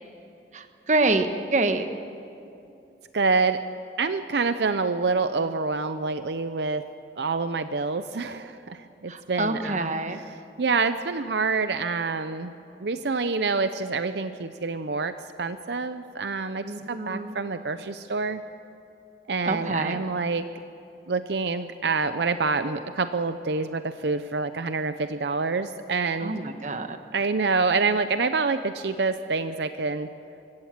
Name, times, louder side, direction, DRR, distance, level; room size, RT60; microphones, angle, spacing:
voice 1, 0.5-1.9 9.1-10.2 16.6-17.4 19.4-20.0 26.2-27.0, right 2 dB, 45° right, 7 dB, 1.2 m, -26 dB
voice 2, 3.1-3.6 4.0-6.8 7.2-9.9 10.6-12.5 12.8-15.1 15.4-18.4 19.3-20.4 21.1-26.4 27.1-30.1, right 4 dB, 75° right, 10 dB, 0.7 m, -27 dB
25.0 x 15.5 x 7.6 m, 2.8 s
head